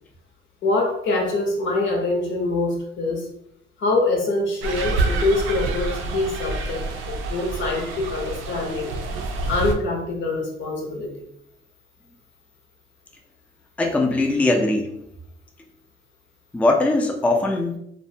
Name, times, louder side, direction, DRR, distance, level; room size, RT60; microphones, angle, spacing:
voice 1, 0.6-3.2 3.8-8.9 9.5-11.1, left 2 dB, 75° left, 0 dB, 0.8 m, -24 dB
sound 1, 4.6-9.7, right 3 dB, 90° right, 0.4 m, -27 dB
voice 2, 13.8-15.0 16.5-17.8, left 2 dB, 5° left, 2 dB, 0.3 m, -20 dB
2.5 x 2.1 x 2.6 m, 0.76 s
cardioid pair, 90°, 20 cm